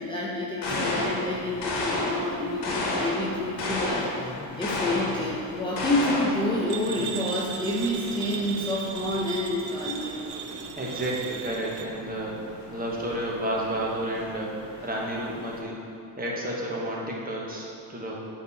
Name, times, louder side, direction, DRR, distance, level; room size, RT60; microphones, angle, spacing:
voice 1, 0.0-4.1 4.6-10.8, left 1 dB, 10° left, -6 dB, 0.6 m, -29 dB
sound 1, 0.6-1.2 1.6-2.2 2.6-3.2 3.6-4.1 4.6-5.2 5.8-6.4, left 2 dB, 75° left, 1.5 m, -29 dB
sound 2, 0.6-15.6, left 2 dB, 40° left, 1.0 m, -42 dB
sound 3, 6.7-11.9, right 8 dB, 65° right, 0.6 m, -37 dB
voice 2, 10.8-14.5 14.8-15.8 16.2-18.2, right 1 dB, 20° right, -3 dB, 1.1 m, -31 dB
8.1 x 4.1 x 4.1 m, 2.6 s
cardioid pair, 125°, 43 cm